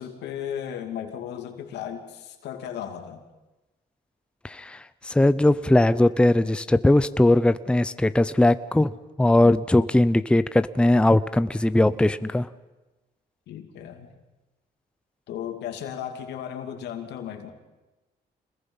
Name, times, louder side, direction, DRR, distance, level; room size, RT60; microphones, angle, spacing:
voice 1, 0.0-3.2 13.5-14.1 15.3-17.5, left 9 dB, 85° left, 5 dB, 2.6 m, -35 dB
voice 2, 4.4-8.9 9.2-12.5, left 1 dB, 5° left, 14 dB, 0.7 m, -20 dB
26.5 x 21.0 x 5.6 m, 1.1 s
cardioid pair, 85°, 17 cm